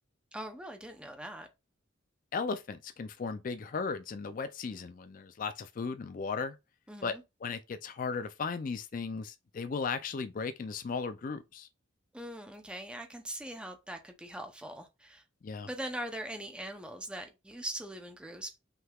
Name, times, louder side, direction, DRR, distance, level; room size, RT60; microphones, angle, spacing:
voice 1, 0.3-1.5 6.9-7.2 12.1-15.2 15.6-18.6, right 1 dB, 5° right, 0.6 m, -41 dB
voice 2, 2.3-6.6 7.0-7.1 7.4-11.7 15.4-15.7, left 5 dB, 45° left, 0.4 m, -36 dB
5.5 x 3.8 x 2.3 m
head